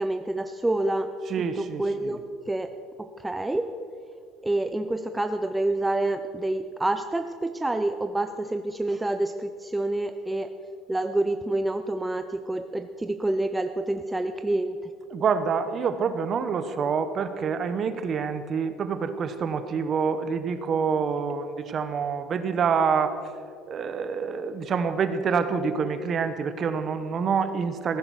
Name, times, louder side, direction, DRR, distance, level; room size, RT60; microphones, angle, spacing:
voice 1, 0.0-1.1 1.6-2.7 3.0-3.7 4.4-10.5 10.9-14.9, right 2 dB, 5° right, 7 dB, 0.4 m, -28 dB
voice 2, 1.3-2.2 15.1-23.2 23.7-28.0, right 6 dB, 35° right, 10 dB, 1.0 m, -27 dB
16.5 x 9.9 x 6.4 m, 2.3 s
cardioid pair, 155°, 0 cm